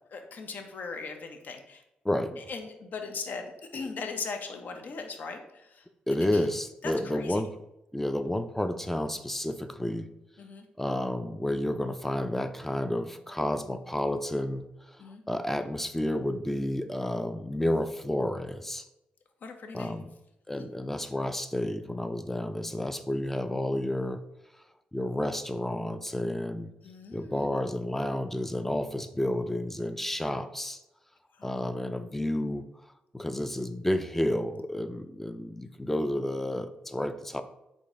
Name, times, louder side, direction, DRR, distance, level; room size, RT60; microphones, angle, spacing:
voice 1, 0.1-1.8 2.5-5.4 6.3-6.5 6.8-7.4 10.4-10.6 15.0-15.2 19.4-20.0 20.5-20.7 26.8-27.5 31.4-31.6, left 4 dB, 60° left, 5 dB, 0.6 m, -39 dB
voice 2, 2.0-2.4 6.1-7.6 7.9-10.1 10.8-15.0 15.3-18.9 19.7-20.1 20.5-24.2 24.9-26.7 27.1-30.8 31.4-32.7 33.1-37.4, left 1 dB, 10° left, 10 dB, 0.4 m, -31 dB
3.9 x 2.5 x 3.6 m, 0.90 s
supercardioid pair, 55°, 3 cm